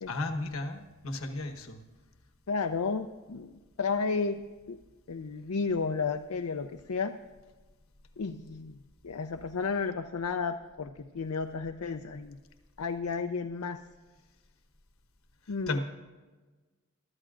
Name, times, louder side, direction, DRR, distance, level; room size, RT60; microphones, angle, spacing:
voice 1, 0.1-1.8 15.7-15.8, left 2 dB, 70° left, 7 dB, 1.2 m, -34 dB
voice 2, 2.5-3.5 3.8-4.4 4.7-4.8 5.1-7.1 8.2-8.7 9.0-12.4 12.8-13.8 15.5-15.8, left 4 dB, 85° left, 6 dB, 0.5 m, -32 dB
22.5 x 13.0 x 2.5 m, 1.3 s
head